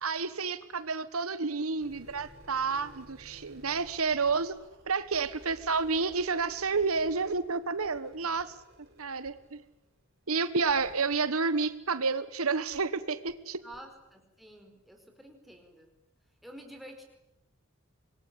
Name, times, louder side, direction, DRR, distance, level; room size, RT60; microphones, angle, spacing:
voice 1, 0.0-4.6 4.8-8.5 9.0-9.6 10.3-13.6, right 4 dB, 90° right, 13 dB, 1.4 m, -30 dB
sound 1, 1.7-12.1 12.7-12.8 13.3-13.4 13.7-13.8, right 1 dB, 50° right, 7.0 m, -56 dB
voice 2, 13.6-15.9 16.2-17.0, right 1 dB, ahead, 2 dB, 4.6 m, -50 dB
25.5 x 21.0 x 10.0 m, 0.88 s
head